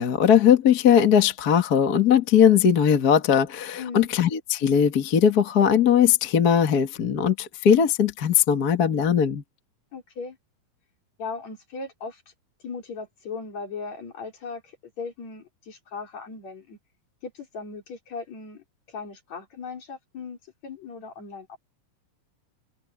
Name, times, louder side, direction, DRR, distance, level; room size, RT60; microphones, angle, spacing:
voice 1, 0.0-9.4, left 8 dB, 40° left, 1.5 m, -19 dB
voice 2, 3.8-4.1 9.9-10.4 11.2-12.2 12.6-16.8 17.2-21.6, left 4 dB, 60° left, 5.3 m, -38 dB
omnidirectional pair, 3.6 m